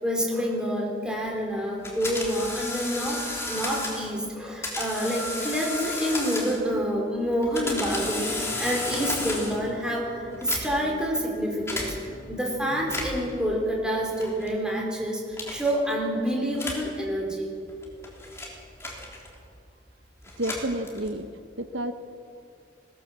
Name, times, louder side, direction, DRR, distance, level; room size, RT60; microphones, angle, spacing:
voice 1, 0.0-11.9 12.3-15.2 15.5-17.5, equal, 5° right, -1 dB, 4.2 m, -28 dB
sound 1, 1.8-4.1 4.6-6.7 7.3-9.7 10.3-10.9 11.7-11.9 12.8-13.3 14.2-14.5 15.3-15.7 16.5-16.9 17.7-19.4 20.2-21.2, left 2 dB, 15° left, 3.6 m, -33 dB
Guitar, 8.2-13.3, left 1 dB, 60° left, 4.7 m, -45 dB
voice 2, 20.4-21.9, right 1 dB, 80° right, 9 dB, 1.0 m, -31 dB
20.0 x 18.5 x 7.5 m, 2.4 s
head